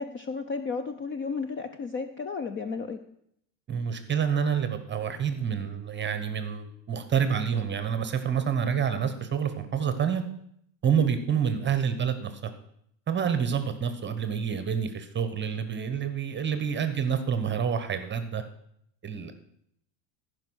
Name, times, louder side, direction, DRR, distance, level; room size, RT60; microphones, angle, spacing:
voice 1, 0.0-3.0, left 4 dB, 25° left, 9 dB, 0.5 m, -33 dB
voice 2, 3.7-10.2 10.8-12.3 13.1-18.4 19.0-19.3, right 7 dB, 20° right, 10 dB, 1.0 m, -28 dB
14.5 x 5.3 x 6.3 m, 0.71 s
supercardioid pair, 120°, 50 cm